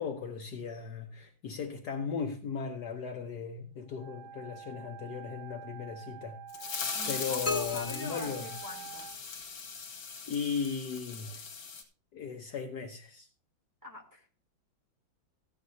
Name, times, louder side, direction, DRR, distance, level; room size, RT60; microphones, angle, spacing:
voice 1, 0.0-8.4 10.3-11.4 12.1-13.3, left 6 dB, 60° left, 1.3 m, -37 dB
Wind instrument woodwind instrument, 3.9-9.2, right 8 dB, 90° right, 1.6 m, -47 dB
sound 1, 6.5-11.8, left 5 dB, 80° left, 2.6 m, -39 dB
voice 2, 6.9-9.1 13.8-14.4, left 1 dB, 10° right, 2.1 m, -44 dB
sound 2, 7.5-9.4, left 4 dB, 35° left, 1.6 m, -37 dB
14.5 x 9.5 x 2.7 m
omnidirectional pair, 2.2 m